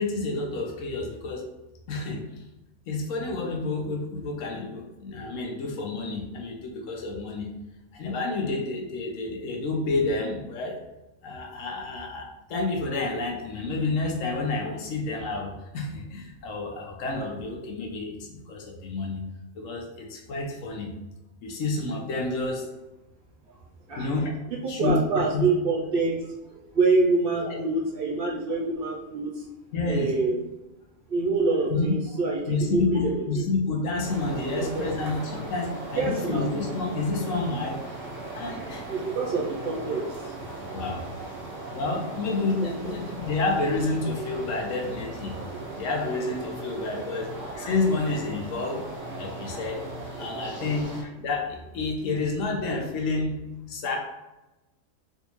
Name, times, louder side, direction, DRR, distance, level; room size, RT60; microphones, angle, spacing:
voice 1, 0.0-1.5 1.9-2.2 2.9-7.5 7.9-10.8 11.2-19.2 19.5-20.9 21.4-22.7 23.9-24.3 24.7-25.0 25.3-25.5 27.4-27.6 29.7-30.1 31.7-31.9 32.5-37.8 38.3-38.8 40.7-41.1 41.7-45.4 45.8-48.8 49.2-49.8 50.2-53.3 53.7-54.0, left 3 dB, 80° left, 2 dB, 1.0 m, -29 dB
voice 2, 24.6-29.4 29.9-30.4 31.1-33.1 34.7-34.8 35.9-36.5 38.9-40.3 42.6-42.9 45.5-45.7, right 3 dB, 60° right, -2 dB, 0.6 m, -26 dB
sound 1, 34.0-51.0, right 2 dB, 10° right, 0.7 m, -38 dB
3.4 x 2.6 x 2.9 m, 1.0 s
omnidirectional pair, 1.3 m